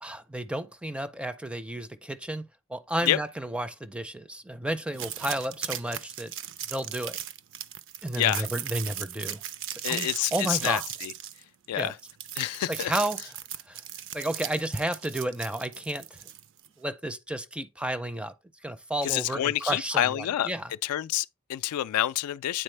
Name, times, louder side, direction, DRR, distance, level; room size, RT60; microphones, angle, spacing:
voice 1, 0.0-2.4 2.7-6.3 6.7-7.2 8.0-9.4 9.7-10.8 11.7-11.9 12.7-13.2 13.7-13.8 14.1-16.2 16.8-18.3 18.6-20.7, right 1 dB, 5° right, 0.4 m, -32 dB
sound 1, 4.9-16.7, right 10 dB, 60° right, 0.5 m, -37 dB
voice 2, 8.2-8.5 9.8-11.1 11.7-12.0 12.4-12.9 19.0-20.5 20.8-22.6, left 12 dB, 85° left, 0.3 m, -28 dB
9.0 x 4.1 x 3.2 m
head